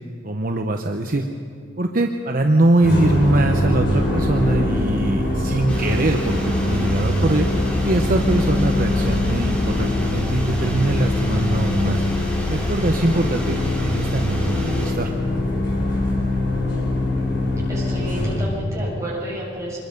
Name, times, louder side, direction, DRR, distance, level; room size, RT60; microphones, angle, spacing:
voice 1, 0.2-1.2 1.8-7.5 7.8-12.0 12.5-13.6 13.8-15.1, right 2 dB, 45° right, 4 dB, 0.9 m, -22 dB
sound 1, 2.8-18.6, left 1 dB, 60° left, 4.5 m, -23 dB
sound 2, 5.7-14.9, left 1 dB, 5° left, 3.4 m, -29 dB
voice 2, 17.7-19.8, equal, 15° right, -6 dB, 6.9 m, -30 dB
25.0 x 21.5 x 5.4 m, 2.4 s
head